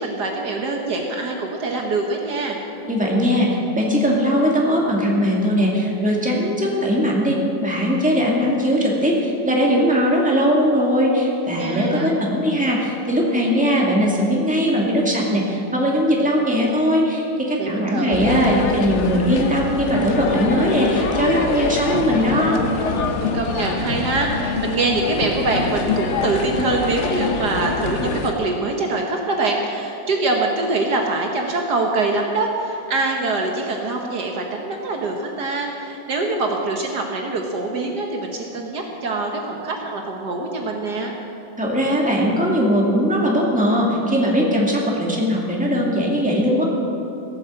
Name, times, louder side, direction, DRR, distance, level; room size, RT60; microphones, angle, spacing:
voice 1, 0.0-2.6 11.5-12.1 17.6-18.3 23.3-41.1, right 3 dB, 65° right, 1 dB, 1.6 m, -24 dB
voice 2, 2.9-22.6 41.6-46.6, equal, 5° right, -3 dB, 2.1 m, -19 dB
sound 1, 18.1-28.3, left 4 dB, 45° left, 1.0 m, -25 dB
17.0 x 7.5 x 7.7 m, 2.9 s
omnidirectional pair, 2.0 m